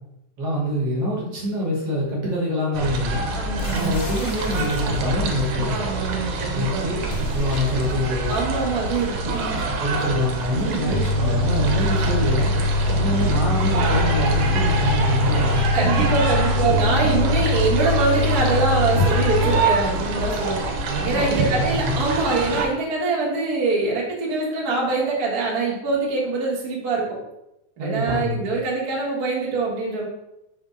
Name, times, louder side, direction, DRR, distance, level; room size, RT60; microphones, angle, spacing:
voice 1, 0.4-3.2 3.7-5.8 6.5-6.9 7.3-8.4 9.8-12.5 12.9-15.7 16.4-16.5 21.1-22.0 27.8-28.4, left 1 dB, 55° right, -3 dB, 2.1 m, -25 dB
sound 1, 2.7-22.7, right 3 dB, 85° right, 2.4 m, -26 dB
voice 2, 3.3-4.0 5.7-6.8 8.3-9.6 10.5-10.9 15.7-20.6 21.0-27.2 27.8-30.1, right 3 dB, 40° right, -4 dB, 1.5 m, -24 dB
sound 2, 3.6-5.3 7.0-8.2, left 3 dB, 80° left, 2.2 m, -38 dB
sound 3, 10.9-19.6, left 2 dB, 55° left, 1.6 m, -22 dB
5.5 x 3.6 x 5.0 m, 0.88 s
omnidirectional pair, 3.6 m